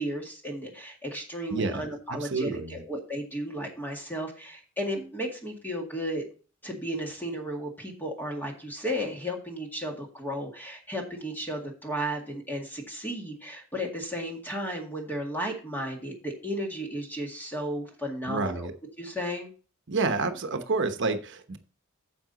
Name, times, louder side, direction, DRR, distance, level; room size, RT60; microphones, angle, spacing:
voice 1, 0.0-6.2 6.6-18.7 19.0-19.5, equal, 10° left, 1 dB, 2.0 m, -34 dB
voice 2, 1.5-2.8 18.3-18.7 19.9-21.6, right 3 dB, 60° right, 8 dB, 1.0 m, -29 dB
9.6 x 7.2 x 4.0 m, 0.36 s
head